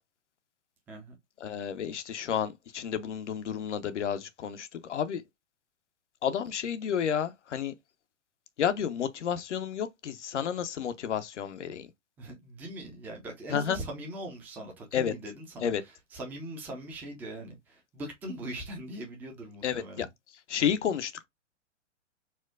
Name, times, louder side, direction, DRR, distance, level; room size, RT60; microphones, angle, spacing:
voice 1, 1.4-5.2 6.2-7.7 8.6-11.9 13.5-13.8 14.9-15.1 15.6-15.8 19.6-20.1 20.5-21.3, left 8 dB, 70° left, 0.6 m, -31 dB
voice 2, 12.2-20.1, right 1 dB, 5° right, 0.4 m, -41 dB
4.4 x 2.1 x 2.2 m
figure-of-eight pair, 120°, 37 cm